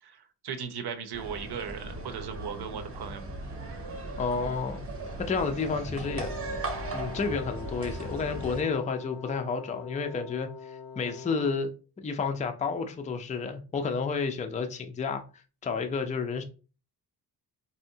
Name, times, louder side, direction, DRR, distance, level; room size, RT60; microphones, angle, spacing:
voice 1, 0.0-3.3, right 7 dB, 70° right, 0.7 m, -37 dB
sound 1, 1.1-8.6, right 2 dB, 35° right, 0.7 m, -37 dB
voice 2, 4.2-4.9 5.2-6.3 6.9-11.7 12.0-15.2 15.6-16.4, left 5 dB, 20° left, 0.4 m, -31 dB
Wind instrument woodwind instrument, 6.0-11.7, left 6 dB, 75° left, 0.6 m, -44 dB
4.4 x 2.7 x 2.7 m
wide cardioid pair, 140°, 41 cm